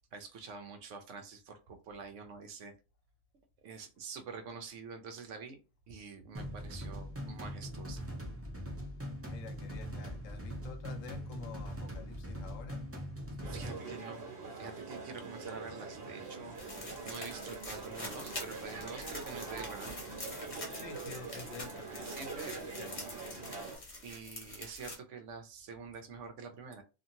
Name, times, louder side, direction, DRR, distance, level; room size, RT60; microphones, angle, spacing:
voice 1, 0.1-2.7 3.6-5.6 5.9-8.0 13.4-14.2 14.5-16.6 17.0-19.9 22.0-22.6 24.0-26.8, right 5 dB, 70° right, 0.9 m, -46 dB
sound 1, 6.3-13.7, equal, 25° right, 0.3 m, -41 dB
voice 2, 9.2-12.8 20.7-23.4, left 4 dB, 75° left, 0.9 m, -49 dB
sound 2, 13.4-23.8, right 4 dB, 45° right, 1.2 m, -44 dB
sound 3, 16.5-24.9, left 1 dB, 30° left, 0.8 m, -46 dB
2.7 x 2.5 x 2.7 m
omnidirectional pair, 1.4 m